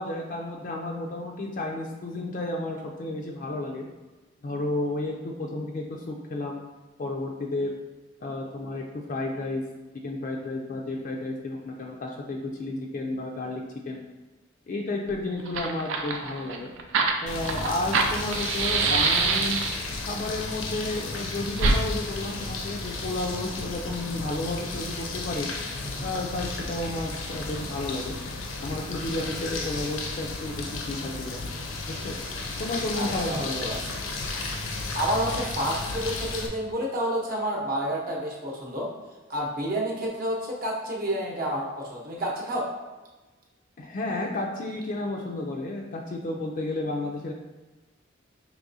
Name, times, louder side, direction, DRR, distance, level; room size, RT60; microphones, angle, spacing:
voice 1, 0.0-3.9 4.4-6.6 7.0-7.7 8.2-9.6 10.0-14.0 14.7-16.7 17.2-19.6 20.1-25.5 26.0-28.2 28.6-31.4 31.9-32.1 32.6-33.7 43.8-47.3, left 2 dB, 40° left, 0 dB, 0.3 m, -32 dB
Fire, 15.1-15.2 15.4-19.9 21.6-21.8, right 4 dB, 70° right, 0.4 m, -25 dB
sound 1, 17.3-36.5, left 3 dB, 85° left, 0.6 m, -34 dB
voice 2, 32.9-33.8 34.9-38.9 39.3-42.7, right 1 dB, 45° right, -2 dB, 0.8 m, -29 dB
4.7 x 3.0 x 2.6 m, 1.2 s
head